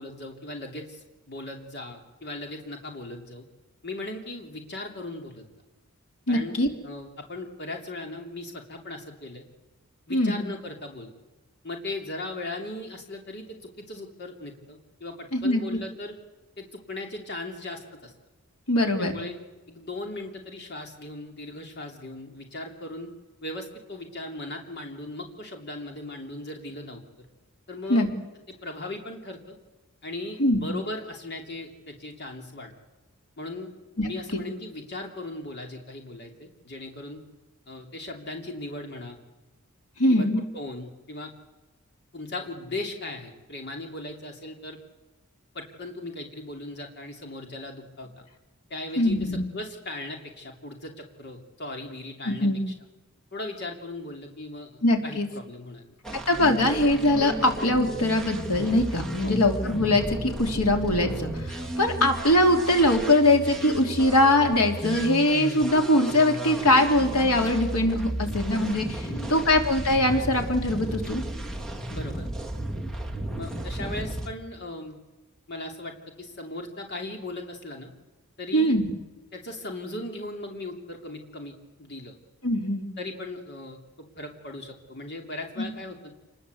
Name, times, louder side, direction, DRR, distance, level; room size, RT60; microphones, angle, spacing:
voice 1, 0.0-3.4 3.8-5.5 6.3-6.6 6.8-9.4 10.1-11.1 11.6-16.2 16.6-18.1 19.0-19.4 19.7-23.1 23.4-27.0 27.7-28.1 28.5-29.6 30.0-32.7 33.4-33.7 34.0-37.2 37.7-39.2 40.1-40.3 40.5-41.3 42.1-44.8 45.5-48.2 48.7-52.7 53.3-54.7 55.0-55.9 59.2-59.4 69.0-69.5 71.9-72.3 73.4-75.0 75.5-77.9 78.4-78.7 79.3-82.1 83.0-86.1, left 2 dB, 50° left, 3 dB, 3.0 m, -38 dB
voice 2, 6.3-6.7 10.1-10.4 15.3-15.6 18.7-19.1 27.9-28.1 30.4-30.7 34.0-34.1 40.0-40.4 49.0-49.4 52.2-52.6 54.8-55.3 56.1-71.2 78.5-78.9 82.4-82.8, left 1 dB, 85° left, 3 dB, 3.4 m, -22 dB
sound 1, 56.0-74.3, right 1 dB, 5° left, 2.3 m, -34 dB
28.5 x 20.5 x 8.1 m, 1.1 s
head